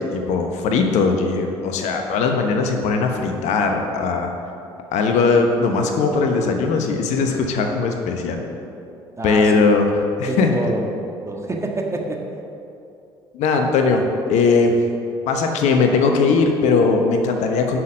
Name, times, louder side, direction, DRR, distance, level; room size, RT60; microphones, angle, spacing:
voice 1, 0.0-4.3 4.9-8.4 9.2-9.9 10.2-10.5 13.3-14.0 14.3-14.7 15.3-17.8, left 4 dB, 65° left, 4 dB, 1.1 m, -19 dB
voice 2, 9.2-9.6 10.3-10.9 11.3-12.3, right 2 dB, 20° right, 1 dB, 1.6 m, -26 dB
9.6 x 6.3 x 6.4 m, 2.6 s
hypercardioid pair, 55°, 13 cm